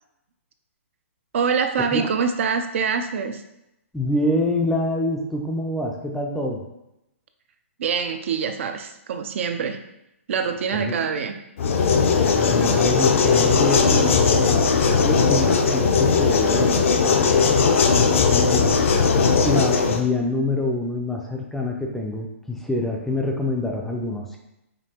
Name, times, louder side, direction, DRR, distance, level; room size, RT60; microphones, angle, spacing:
voice 1, 1.3-3.4 7.8-9.8 10.3-11.4, right 6 dB, 60° right, 7 dB, 0.5 m, -25 dB
voice 2, 3.9-6.6 10.7-11.0 12.1-17.3 18.0-19.0 19.4-24.4, left 2 dB, 5° left, 0 dB, 0.4 m, -26 dB
sound 1, 11.6-20.0, left 5 dB, 65° left, 0.5 m, -18 dB
5.2 x 2.8 x 2.8 m, 0.87 s
hypercardioid pair, 145°, 8 cm